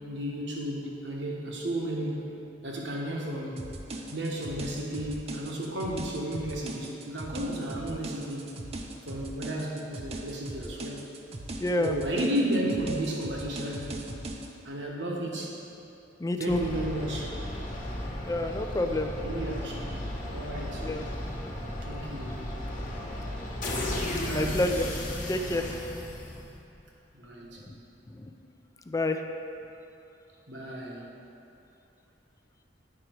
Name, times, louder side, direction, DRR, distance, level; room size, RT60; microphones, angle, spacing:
voice 1, 0.0-2.3 2.6-3.6 4.1-8.5 9.1-11.1 11.8-14.1 14.6-15.5 16.4-17.3 19.2-19.8 20.3-20.9 21.8-22.4 24.2-24.6 27.1-27.6 30.5-31.1, right 1 dB, 75° right, -2 dB, 1.2 m, -33 dB
sound 1, 3.6-14.5, right 1 dB, 35° right, 0.6 m, -39 dB
voice 2, 11.6-11.9 16.2-16.6 18.3-19.1 20.8-21.1 24.3-24.9 25.3-25.8 27.6-27.8 28.1-28.3 28.9-29.2, left 2 dB, 20° left, 6 dB, 0.4 m, -28 dB
sound 2, 16.5-26.7, left 1 dB, 45° left, 1.2 m, -35 dB
9.8 x 5.1 x 4.5 m, 2.7 s
head